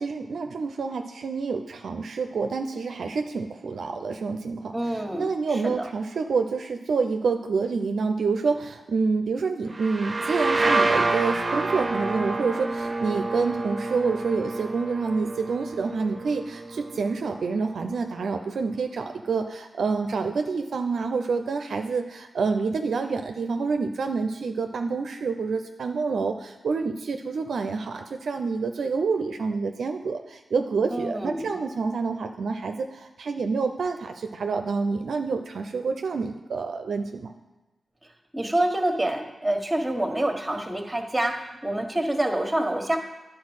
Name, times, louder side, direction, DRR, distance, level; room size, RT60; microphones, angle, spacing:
voice 1, 0.0-37.3, right 4 dB, 80° right, 5 dB, 0.5 m, -28 dB
voice 2, 4.7-5.9 30.9-31.5 38.3-43.0, right 1 dB, 15° right, 4 dB, 1.5 m, -27 dB
sound 1, 9.7-17.3, right 3 dB, 40° right, 0.7 m, -28 dB
9.4 x 4.3 x 6.4 m, 1.1 s
supercardioid pair, 40°, 0 cm